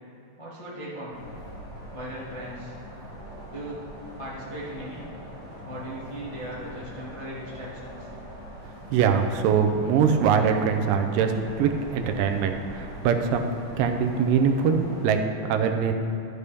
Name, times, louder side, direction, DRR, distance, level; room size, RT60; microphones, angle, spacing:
voice 1, 0.4-1.2 1.9-2.8 3.5-3.8 4.2-5.0 5.6-8.1, right 1 dB, 25° left, -9 dB, 0.7 m, -38 dB
sound 1, 1.1-15.1, equal, 80° left, 4.1 m, -42 dB
voice 2, 8.9-11.3 11.6-13.5 13.8-14.8 15.0-15.9, right 6 dB, 85° right, 6 dB, 2.3 m, -23 dB
12.5 x 8.2 x 3.5 m, 3.0 s
omnidirectional pair, 3.9 m